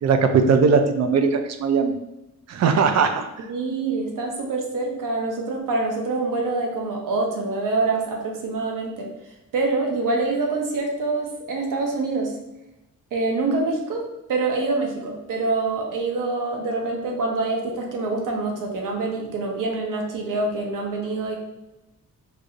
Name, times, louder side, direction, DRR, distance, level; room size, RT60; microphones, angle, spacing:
voice 1, 0.0-1.9 2.5-3.3, right 5 dB, 55° right, 7 dB, 0.5 m, -19 dB
voice 2, 3.5-9.1 9.5-12.3 13.1-14.0 14.3-21.4, right 3 dB, 85° right, 0 dB, 0.9 m, -25 dB
4.6 x 2.5 x 2.5 m, 0.94 s
wide cardioid pair, 150°, 31 cm